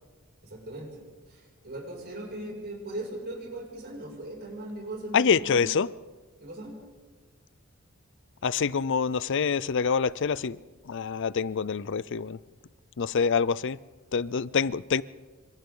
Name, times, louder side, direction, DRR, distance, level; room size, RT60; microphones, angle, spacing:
voice 1, 0.4-1.0 1.3-5.7 6.4-6.8, right 1 dB, 50° right, 6.4 m, -39 dB
voice 2, 5.1-5.9 8.4-10.6 10.9-12.4 13.0-13.8 14.1-15.0, left 6 dB, 60° left, 0.5 m, -26 dB
27.5 x 26.0 x 3.9 m
head